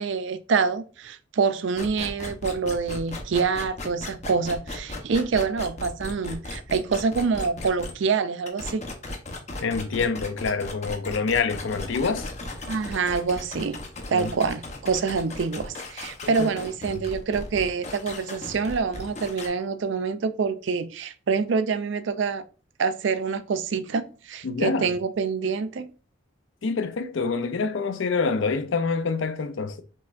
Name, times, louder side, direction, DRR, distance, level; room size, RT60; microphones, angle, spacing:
voice 1, 0.0-8.8 12.7-13.8 14.1-22.4 22.8-25.9, right 5 dB, 65° right, 0.4 m, -26 dB
sound 1, 1.8-7.9 8.5-19.5, left 2 dB, 35° left, 0.9 m, -36 dB
voice 2, 9.6-12.3 14.1-14.3 16.2-16.5 24.4-24.9 26.6-29.8, left 4 dB, 75° left, 0.5 m, -26 dB
5.6 x 3.1 x 2.5 m
head